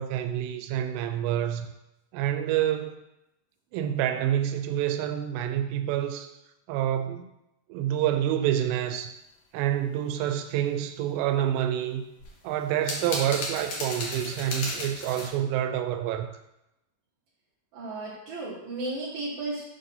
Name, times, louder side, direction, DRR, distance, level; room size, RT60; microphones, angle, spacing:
voice 1, 0.0-1.7 2.1-3.0 3.7-6.3 6.7-7.3 7.7-9.1 9.5-12.0 12.4-16.3, right 11 dB, 90° right, 2.7 m, -27 dB
sound 1, 12.2-15.3, left 2 dB, 70° left, 1.7 m, -34 dB
voice 2, 17.7-19.6, right 2 dB, 70° right, 1.8 m, -34 dB
7.0 x 2.7 x 5.4 m
omnidirectional pair, 4.9 m